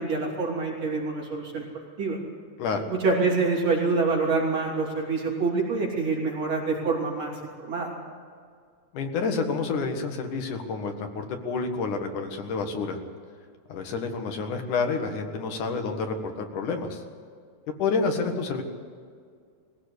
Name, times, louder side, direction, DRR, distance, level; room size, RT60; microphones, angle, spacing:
voice 1, 0.0-2.2 2.9-7.3 7.6-7.9, right 4 dB, 55° right, -2 dB, 4.0 m, -26 dB
voice 2, 8.9-13.0 13.7-17.0 17.8-18.6, left 4 dB, 85° left, 4 dB, 3.3 m, -29 dB
21.0 x 16.0 x 8.3 m, 2.1 s
omnidirectional pair, 3.5 m